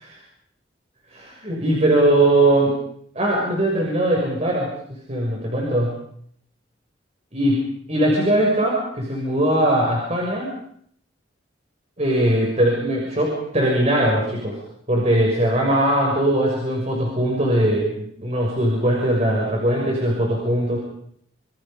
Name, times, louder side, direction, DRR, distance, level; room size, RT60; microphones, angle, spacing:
voice 1, 1.1-2.7 3.1-4.7 5.1-5.9 7.3-7.5 7.9-10.5 12.0-14.5 14.9-20.8, right 1 dB, 35° right, -2 dB, 6.6 m, -20 dB
27.5 x 27.5 x 5.3 m, 0.65 s
head